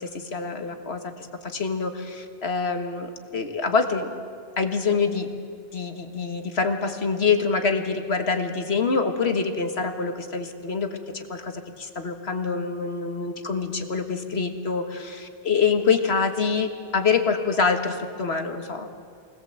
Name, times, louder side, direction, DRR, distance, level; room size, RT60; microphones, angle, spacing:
voice 1, 0.0-4.1 4.6-5.3 5.7-10.9 11.1-18.9, left 5 dB, 75° left, 6 dB, 1.8 m, -25 dB
25.0 x 19.0 x 7.8 m, 2.3 s
omnidirectional pair, 1.1 m